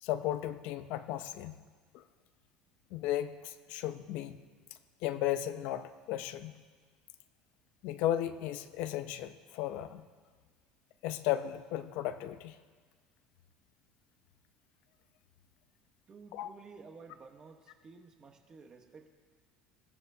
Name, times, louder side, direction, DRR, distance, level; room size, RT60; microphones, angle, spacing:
voice 1, 0.0-1.6 1.9-2.0 2.9-4.4 5.0-6.5 7.8-10.0 11.0-12.6 16.3-16.5, left 12 dB, 65° left, 10 dB, 0.7 m, -35 dB
voice 2, 16.1-19.1, right 4 dB, 25° right, 4 dB, 1.1 m, -53 dB
21.0 x 15.0 x 2.8 m, 1.5 s
cardioid pair, 145°, 3 cm